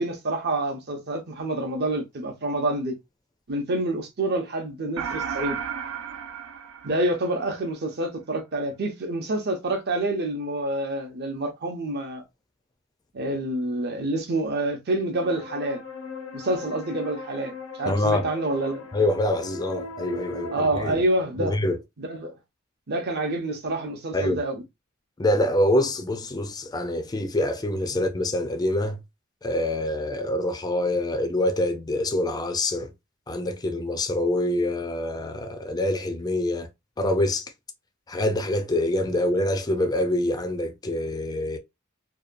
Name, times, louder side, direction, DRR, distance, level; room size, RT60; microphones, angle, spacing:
voice 1, 0.0-2.9 3.5-5.6 6.8-12.2 13.1-15.8 16.3-18.9 20.5-21.6 22.0-22.3 22.9-24.6 27.9-28.0, right 1 dB, 50° right, 0.7 m, -27 dB
sound 1, 5.0-7.6, right 7 dB, 90° right, 0.4 m, -33 dB
sound 2, 15.2-20.7, left 3 dB, 80° left, 0.6 m, -39 dB
voice 2, 17.9-18.3 18.9-21.0 21.4-21.8 24.1-24.4 25.2-29.0 29.4-32.9 33.3-36.7 37.0-37.5 38.1-41.6, left 1 dB, 20° left, 0.4 m, -25 dB
2.8 x 2.2 x 2.5 m
head